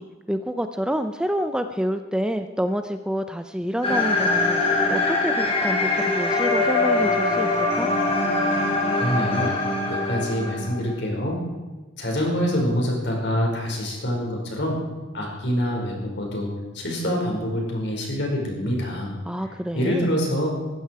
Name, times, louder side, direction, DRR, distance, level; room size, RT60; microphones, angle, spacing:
voice 1, 0.0-7.9 19.3-20.1, equal, 5° right, 8 dB, 0.6 m, -28 dB
sound 1, 3.8-10.9, left 2 dB, 30° left, 2.9 m, -23 dB
voice 2, 9.0-9.5 9.9-11.4 12.0-14.8 15.1-16.5 16.7-19.1 19.4-20.5, equal, 60° left, -1 dB, 5.4 m, -26 dB
20.0 x 15.0 x 4.8 m, 1.2 s
head